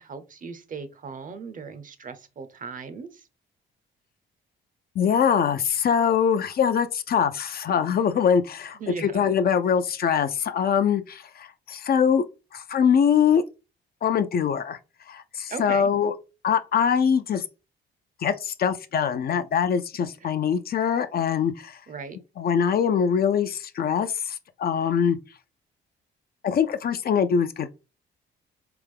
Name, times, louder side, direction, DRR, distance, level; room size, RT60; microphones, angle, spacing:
voice 1, 0.0-3.3 8.7-9.2 15.5-15.9 20.2-20.3 21.9-22.2, right 5 dB, 40° right, 0.7 m, -38 dB
voice 2, 5.0-12.2 12.5-13.4 14.0-14.8 15.1-16.1 16.4-17.4 18.2-21.8 22.4-25.2 26.4-27.7, left 7 dB, 50° left, 0.5 m, -23 dB
3.6 x 3.5 x 3.4 m
cardioid pair, 90°, 20 cm